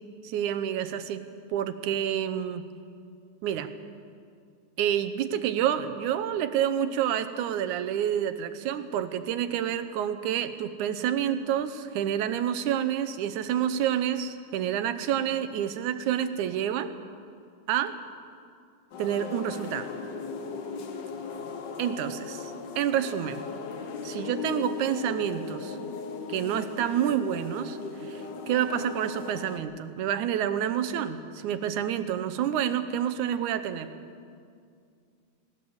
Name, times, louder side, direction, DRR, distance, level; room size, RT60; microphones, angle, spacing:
voice 1, 0.2-1.2 1.5-2.7 3.4-3.7 4.8-16.9 17.7-18.0 19.0-19.9 21.8-23.4 24.0-25.8 26.3-33.9, right 10 dB, 80° right, 11 dB, 2.4 m, -28 dB
sound 1, 18.9-29.6, left 5 dB, 65° left, 1.1 m, -38 dB
18.5 x 18.5 x 7.9 m, 2.3 s
omnidirectional pair, 3.5 m